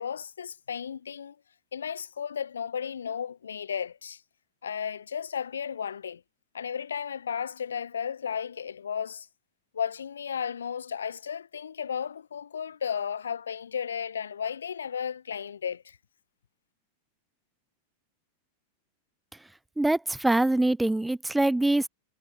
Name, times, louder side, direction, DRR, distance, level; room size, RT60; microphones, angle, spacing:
voice 1, 0.0-1.4 1.7-4.2 4.6-6.2 6.5-9.3 9.7-16.0, left 7 dB, 70° left, 1.0 m, -34 dB
voice 2, 19.8-21.9, right 2 dB, 5° right, 0.6 m, -24 dB
figure-of-eight pair, 90°, 0 cm